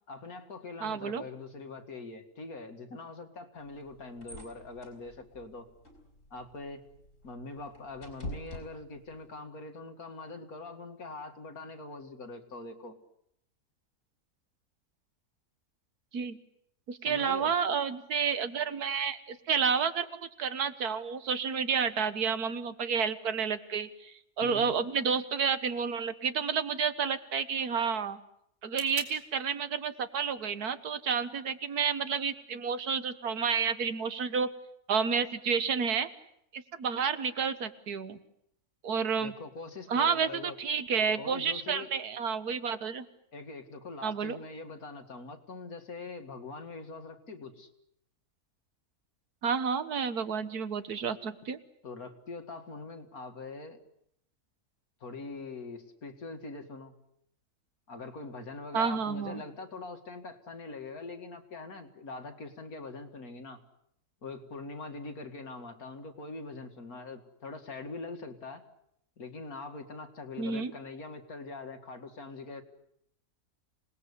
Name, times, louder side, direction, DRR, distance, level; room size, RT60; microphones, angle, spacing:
voice 1, 0.1-5.7 6.3-6.8 7.2-13.0 17.0-17.5 24.4-24.7 39.2-40.6 41.2-41.9 43.3-47.7 51.8-53.8 55.0-56.9 57.9-63.6 64.2-68.6 69.2-72.6, left 3 dB, 70° left, 6 dB, 2.5 m, -43 dB
voice 2, 0.8-1.2 16.1-16.4 16.9-20.1 20.4-28.2 28.6-34.5 34.9-36.1 36.5-38.2 38.8-39.3 39.9-43.1 44.0-44.4 49.4-51.6 58.7-59.4 70.4-70.7, right 6 dB, 85° right, 12 dB, 1.9 m, -30 dB
sound 1, 3.5-9.3, left 1 dB, 55° left, 5.8 m, -47 dB
sound 2, 24.7-32.6, right 2 dB, 50° right, 3.6 m, -53 dB
26.5 x 19.5 x 8.3 m, 0.75 s
omnidirectional pair, 1.6 m